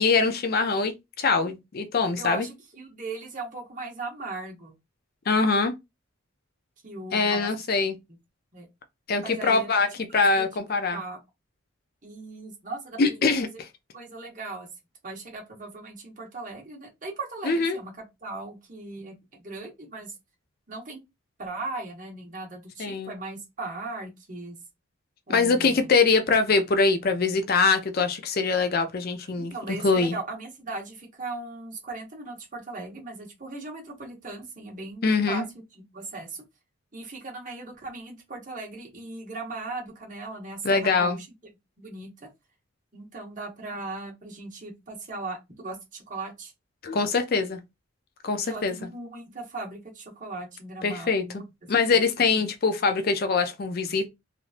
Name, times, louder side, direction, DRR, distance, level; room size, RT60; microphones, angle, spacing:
voice 1, 0.0-2.5 5.3-5.7 7.1-8.0 9.1-9.9 10.1-11.0 13.0-13.7 17.4-17.8 22.8-23.1 25.3-29.5 29.8-30.1 35.0-35.5 40.6-41.2 46.8-47.6 48.2-48.7 50.8-51.2 51.7-54.1, left 4 dB, 45° left, 0.4 m, -23 dB
voice 2, 2.2-4.7 6.8-7.5 8.5-8.7 9.2-9.7 10.1-10.5 10.9-11.2 12.0-13.5 13.9-14.7 15.0-20.2 20.7-21.0 21.4-24.6 25.3-25.9 29.4-35.4 35.7-36.4 36.9-41.3 41.8-42.3 42.9-46.5 48.3-51.7, right 3 dB, 40° right, 1.3 m, -38 dB
3.1 x 2.6 x 2.5 m
head